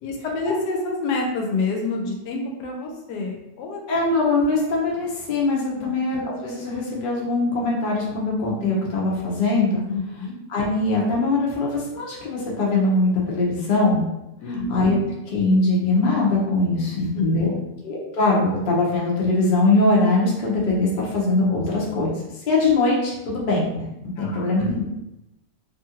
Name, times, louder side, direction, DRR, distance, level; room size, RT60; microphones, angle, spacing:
voice 1, 0.0-3.8 5.8-5.9 9.9-10.4 14.4-14.7 17.0-17.7 24.2-24.5, left 3 dB, 75° left, 0 dB, 1.1 m, -28 dB
voice 2, 3.9-9.8 10.5-14.0 14.7-15.0 15.3-17.5 17.8-22.1 22.5-23.9 24.2-24.8, left 2 dB, 55° left, -4 dB, 0.5 m, -21 dB
2.9 x 2.5 x 2.8 m, 0.91 s
omnidirectional pair, 1.8 m